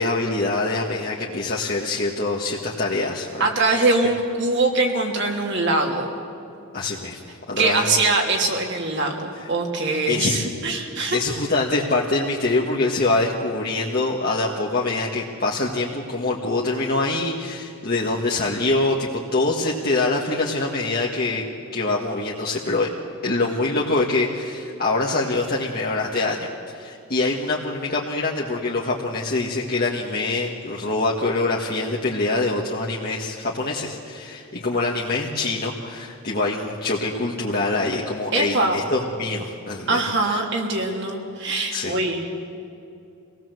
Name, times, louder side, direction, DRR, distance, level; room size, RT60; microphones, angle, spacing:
voice 1, 0.0-3.9 6.7-7.2 7.5-7.9 9.3-9.5 10.1-10.4 11.1-21.4 21.7-22.9 23.2-40.4 41.7-42.0, left 2 dB, 45° left, -3 dB, 1.7 m, -24 dB
voice 2, 3.4-6.1 7.6-11.2 38.3-38.8 39.9-42.3, right 2 dB, 55° right, 1 dB, 3.0 m, -22 dB
26.0 x 18.5 x 7.8 m, 2.7 s
head